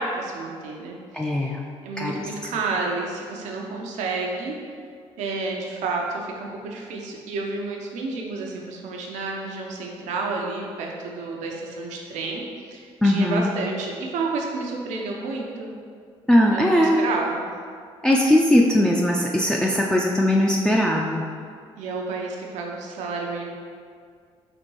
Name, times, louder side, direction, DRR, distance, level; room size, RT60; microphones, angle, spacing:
voice 1, 0.0-1.5 1.8-4.6 5.2-12.4 12.7-15.7 16.5-17.5 21.8-23.5, right 3 dB, 85° right, -1 dB, 0.7 m, -30 dB
voice 2, 1.1-1.6 2.0-2.3 13.0-13.5 16.3-17.0 18.0-21.3, left 1 dB, 5° left, -2 dB, 0.4 m, -19 dB
4.2 x 2.6 x 4.6 m, 2.1 s
cardioid pair, 75°, 12 cm